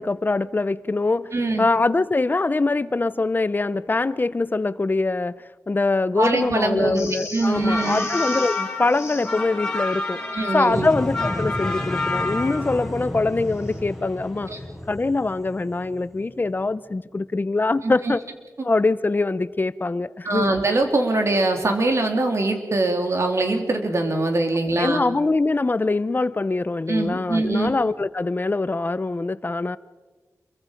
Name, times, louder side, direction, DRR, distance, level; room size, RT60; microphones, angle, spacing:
voice 1, 0.0-1.3 1.6-10.2 10.5-14.5 14.9-18.2 18.6-20.5 24.8-29.8, left 3 dB, 35° left, 16 dB, 0.6 m, -23 dB
voice 2, 1.3-1.7 6.2-8.1 10.3-10.9 14.5-14.6 17.8-18.1 20.2-25.0 26.9-27.7, right 2 dB, 55° right, 4 dB, 3.2 m, -23 dB
sound 1, 7.0-9.5 13.5-13.8, left 3 dB, 55° left, 3.9 m, -38 dB
sound 2, 7.5-12.9, left 2 dB, 15° left, 5.0 m, -28 dB
sound 3, 10.7-16.6, left 1 dB, 5° right, 6.8 m, -32 dB
27.5 x 23.5 x 5.1 m, 1.3 s
wide cardioid pair, 105°, 6 cm